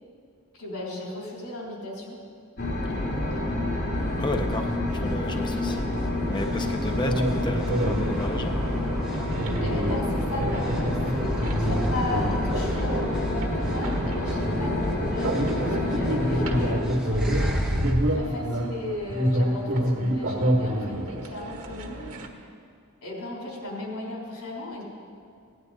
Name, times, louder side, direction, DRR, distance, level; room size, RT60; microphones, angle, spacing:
voice 1, 0.5-2.2 9.4-22.2 23.0-24.8, left 1 dB, 85° left, -4 dB, 3.6 m, -36 dB
sound 1, 2.6-16.8, left 1 dB, 50° left, 2.3 m, -28 dB
sound 2, 3.0-17.9, equal, 5° right, 1.2 m, -36 dB
voice 2, 4.2-5.9 6.3-8.6, left 2 dB, 20° left, 5 dB, 0.4 m, -33 dB
sound 3, 7.0-22.3, equal, 85° right, 1.6 m, -28 dB
17.0 x 10.5 x 4.1 m, 2.3 s
head